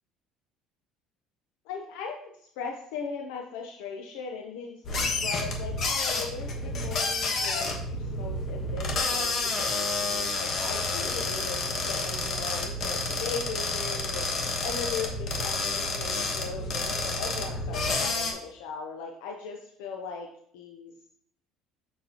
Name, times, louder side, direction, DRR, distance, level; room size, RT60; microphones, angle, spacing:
voice 1, 1.7-20.3 20.5-20.9, left 5 dB, 90° left, 1 dB, 0.7 m, -39 dB
sound 1, 4.8-18.3, left 3 dB, 40° left, 1.2 m, -30 dB
6.7 x 5.9 x 2.9 m, 0.67 s
cardioid pair, 155°, 0 cm